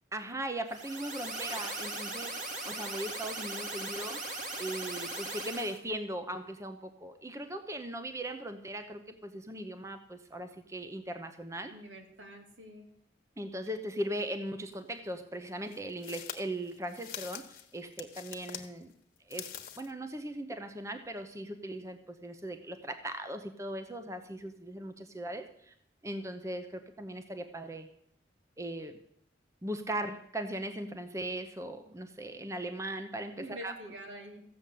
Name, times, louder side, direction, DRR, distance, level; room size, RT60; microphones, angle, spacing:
voice 1, 0.1-2.4 2.6-4.2 4.6-11.7 13.4-18.9 19.3-25.7 26.0-27.9 28.6-29.0 29.6-33.7, right 1 dB, 15° right, 8 dB, 0.8 m, -39 dB
sound 1, 0.7-5.8, right 2 dB, 40° right, 1.8 m, -39 dB
voice 2, 11.7-12.9 33.4-34.4, equal, 85° right, 3 dB, 2.7 m, -46 dB
sound 2, 14.7-14.8 15.7-18.7 19.2-19.9, left 9 dB, 50° left, 1.3 m, -44 dB
15.0 x 7.1 x 8.5 m, 0.71 s
head